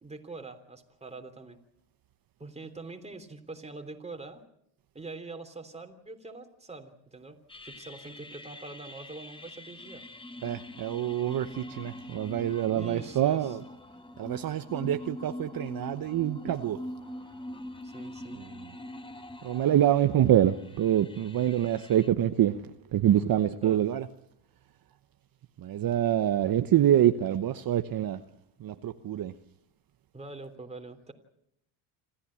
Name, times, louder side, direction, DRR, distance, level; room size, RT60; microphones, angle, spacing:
voice 1, 0.0-1.6 2.4-4.4 4.9-7.4 7.6-10.0 12.7-13.4 17.8-18.4 23.6-23.8 30.1-31.1, right 3 dB, 15° right, 3.3 m, -44 dB
sound 1, 7.5-22.1, left 1 dB, 10° left, 1.4 m, -44 dB
voice 2, 10.4-13.6 14.2-16.8 18.4-18.7 19.4-24.1 25.6-28.2 28.6-29.3, right 11 dB, 50° right, 1.1 m, -26 dB
26.5 x 14.5 x 8.7 m
cardioid pair, 95°, 45 cm